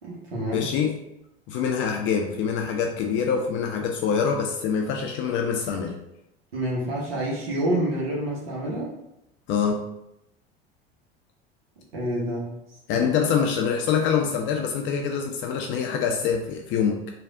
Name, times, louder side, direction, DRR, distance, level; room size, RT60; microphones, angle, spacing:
voice 1, 0.0-0.7 6.5-8.9 11.9-12.5 12.9-13.1, right 1 dB, 75° right, -4 dB, 1.0 m, -28 dB
voice 2, 0.5-0.9 1.5-6.0 9.5-9.8 12.9-17.0, left 6 dB, 40° left, 2 dB, 0.4 m, -25 dB
3.3 x 2.3 x 3.6 m, 0.86 s
figure-of-eight pair, 75°, 31 cm